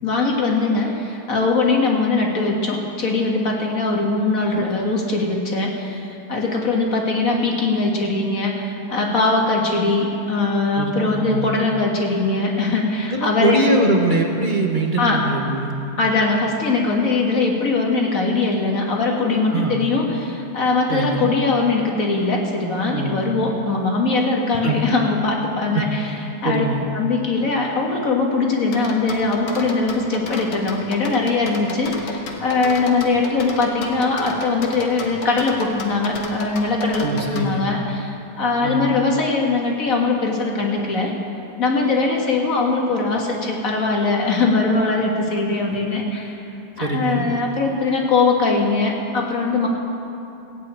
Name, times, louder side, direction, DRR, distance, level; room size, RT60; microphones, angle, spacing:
voice 1, 0.0-13.7 15.0-15.2 16.0-26.1 26.4-26.6 26.9-41.1 41.6-46.4 46.8-49.7, left 3 dB, 40° left, 0 dB, 2.1 m, -21 dB
voice 2, 10.7-11.5 13.1-15.8 19.5-19.8 20.9-21.3 22.9-23.3 24.6-24.8 25.7-25.9 26.4-26.8 37.0-37.7 38.6-38.9 46.8-47.3, right 2 dB, 30° right, 1 dB, 0.9 m, -22 dB
sound 1, 28.7-37.5, left 3 dB, 70° left, 2.1 m, -32 dB
16.0 x 8.4 x 8.8 m, 2.8 s
omnidirectional pair, 2.2 m